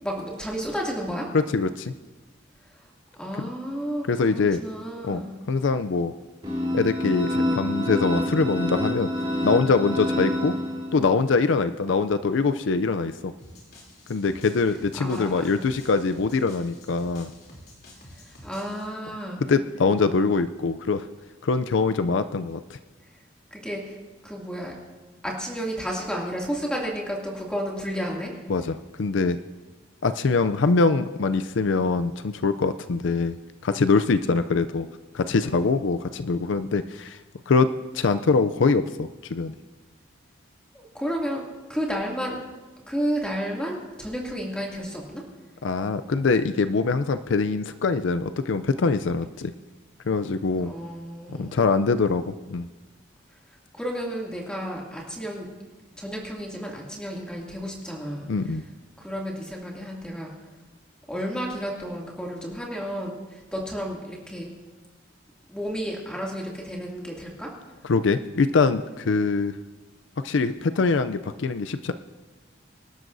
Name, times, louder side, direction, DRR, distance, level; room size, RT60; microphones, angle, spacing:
voice 1, 0.0-1.3 3.2-5.3 15.0-15.5 18.3-19.5 23.5-24.0 24.2-24.7 25.2-28.3 40.7-41.4 41.7-42.4 42.9-45.2 50.6-51.6 53.7-55.5 56.0-58.3 59.0-60.3 61.1-64.5 65.5-67.5, equal, 5° left, -3 dB, 2.5 m, -32 dB
voice 2, 1.3-1.9 3.4-3.5 4.1-4.6 5.0-5.2 5.5-6.1 6.7-9.1 9.4-10.5 10.9-13.3 14.1-17.3 19.5-21.1 21.4-22.8 28.5-29.4 30.0-33.4 33.6-34.9 35.1-37.2 37.5-39.5 45.6-49.5 50.1-50.7 51.3-52.7 58.3-58.6 67.8-69.6 70.2-71.9, left 4 dB, 70° left, 11 dB, 0.5 m, -23 dB
sound 1, 6.4-11.2, left 1 dB, 25° right, 3.3 m, -27 dB
sound 2, 13.4-18.9, left 1 dB, 50° left, 3.1 m, -49 dB
25.0 x 12.5 x 2.7 m, 1.2 s
head